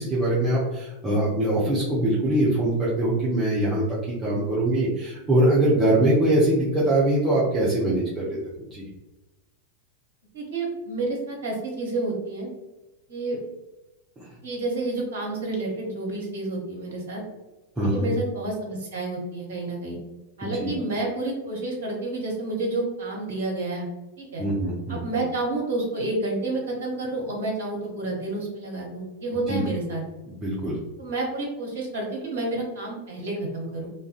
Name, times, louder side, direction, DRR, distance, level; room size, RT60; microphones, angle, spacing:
voice 1, 0.0-8.4 8.7-8.9 17.8-18.1 20.6-20.7 24.4-25.0 29.5-29.6 30.3-30.7, right 1 dB, 15° right, -9 dB, 0.7 m, -23 dB
voice 2, 10.3-12.5 13.1-13.4 14.4-17.2 17.9-20.0 20.4-23.9 24.2-24.4 24.9-30.0 31.0-33.9, right 2 dB, 55° right, -1 dB, 0.7 m, -29 dB
2.5 x 2.2 x 2.4 m, 1.0 s
figure-of-eight pair, 90°, 0 cm